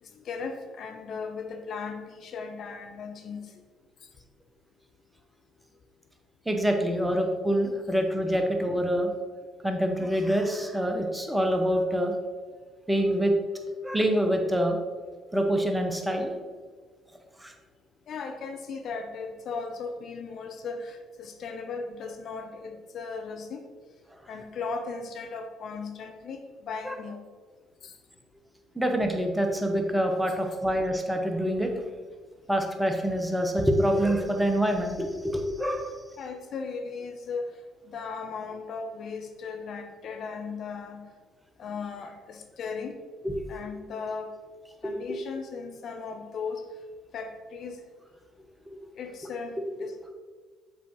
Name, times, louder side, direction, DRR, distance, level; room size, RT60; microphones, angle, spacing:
voice 1, 0.0-3.5 7.1-7.2 18.1-23.6 24.3-27.2 27.8-27.9 36.2-37.5 37.8-41.1 41.6-42.9 43.5-44.3 44.8-46.6 47.1-47.8 49.0-50.1, left 4 dB, 50° left, 5 dB, 0.5 m, -37 dB
voice 2, 6.5-9.1 9.6-12.1 12.9-13.3 13.8-14.8 15.3-16.3 17.4-17.5 26.8-27.0 28.7-31.7 32.5-35.9 43.2-43.4 44.8-44.9, equal, 10° right, 4 dB, 1.0 m, -26 dB
7.3 x 4.9 x 3.1 m, 1.5 s
figure-of-eight pair, 50°, 0 cm